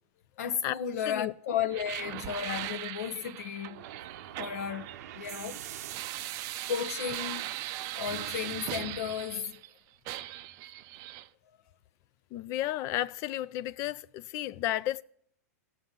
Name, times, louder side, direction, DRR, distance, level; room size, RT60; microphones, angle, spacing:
voice 1, 0.4-3.8 4.4-4.9 5.1-5.6 6.7-7.4 8.0-9.6, left 8 dB, 65° left, 0.8 m, -34 dB
sound 1, 1.7-9.7 10.1-11.3, right 15 dB, 40° right, 0.5 m, -39 dB
sound 2, 3.7-6.4, right 10 dB, 70° right, 0.7 m, -46 dB
voice 2, 12.3-15.0, left 14 dB, 35° left, 0.4 m, -32 dB
19.0 x 6.6 x 3.7 m
hypercardioid pair, 140°, 9 cm